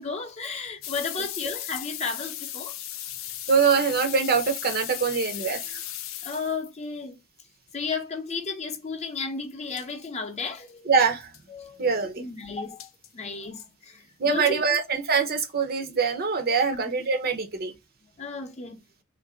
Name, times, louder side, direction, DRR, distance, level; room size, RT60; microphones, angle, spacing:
voice 1, 0.0-2.8 6.2-7.2 7.7-10.9 11.5-11.9 12.2-12.9 13.1-14.6 16.7-16.8 18.2-18.8, left 4 dB, 30° left, 0.6 m, -33 dB
sound 1, 0.8-6.7 9.5-9.6 9.8-9.9 10.4-10.5 10.7-10.8 11.2-11.4 12.8-13.1 13.6-13.7 14.3-14.8 15.4-15.5, left 12 dB, 70° left, 0.5 m, -36 dB
voice 2, 3.5-5.8 10.9-11.3 11.8-12.2 14.2-17.7, right 5 dB, 45° right, 0.7 m, -24 dB
3.2 x 2.5 x 4.2 m
head